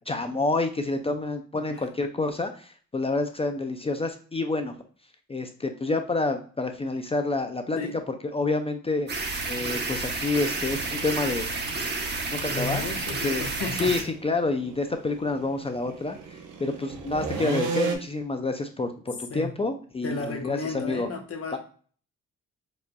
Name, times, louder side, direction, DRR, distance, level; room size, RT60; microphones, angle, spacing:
voice 1, 0.0-4.8 5.3-7.8 8.3-9.1 9.5-11.5 12.3-12.8 13.2-13.4 13.8-21.1 21.5-21.6, left 3 dB, 20° left, 6 dB, 0.4 m, -28 dB
sound 1, 9.1-14.0, right 3 dB, 35° right, 0.9 m, -30 dB
sound 2, 10.5-18.0, right 5 dB, 75° right, 0.9 m, -36 dB
voice 2, 12.5-13.9 19.3-19.5 20.0-21.6, left 3 dB, 50° left, 2 dB, 1.1 m, -33 dB
4.7 x 2.6 x 2.2 m, 0.43 s
cardioid pair, 90°, 30 cm